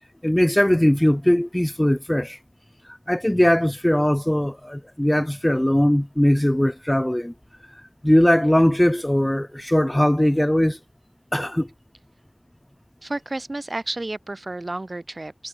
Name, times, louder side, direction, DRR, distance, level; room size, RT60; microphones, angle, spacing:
voice 1, 0.2-2.4 3.1-7.3 8.0-10.8 11.3-11.7, left 1 dB, 10° left, 1.3 m, -20 dB
voice 2, 13.0-15.5, right 2 dB, 40° right, 7.4 m, -31 dB
wide cardioid pair, 60°, 0 cm